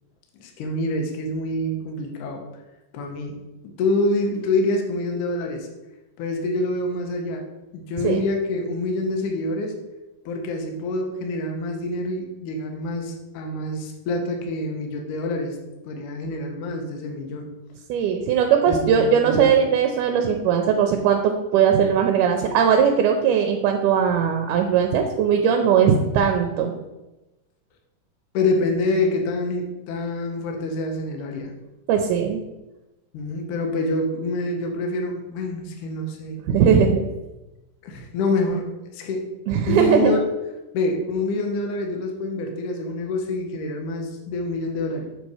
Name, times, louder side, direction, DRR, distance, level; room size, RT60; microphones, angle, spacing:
voice 1, 0.4-2.4 2.9-3.4 3.8-5.7 6.2-7.4 7.7-9.8 10.3-15.6 15.8-17.5 18.7-19.5 28.3-31.5 33.1-36.4 37.8-38.7 38.9-39.2 39.7-40.3 40.7-45.1, left 2 dB, 75° left, 2 dB, 2.3 m, -26 dB
voice 2, 17.9-26.7 31.9-32.4 36.5-37.0 39.5-40.2, right 7 dB, 80° right, 4 dB, 2.0 m, -19 dB
6.7 x 4.1 x 4.8 m, 1.0 s
omnidirectional pair, 3.9 m